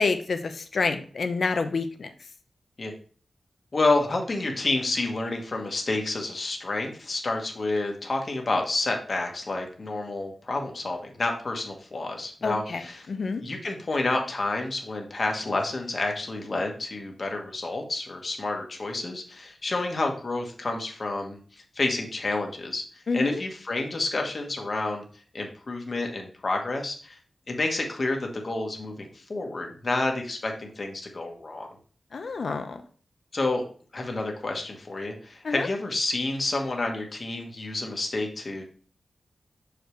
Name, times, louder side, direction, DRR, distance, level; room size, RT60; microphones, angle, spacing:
voice 1, 0.0-2.1 12.4-13.4 23.1-23.4 32.1-32.8 35.4-35.7, left 4 dB, 70° left, 8 dB, 0.7 m, -28 dB
voice 2, 3.7-13.1 13.4-21.4 21.7-22.8 23.1-25.0 25.3-27.2 27.5-31.7 33.3-33.6 33.9-38.6, left 2 dB, 50° left, 2 dB, 1.3 m, -29 dB
6.3 x 5.1 x 3.1 m, 0.42 s
wide cardioid pair, 90°, 0 cm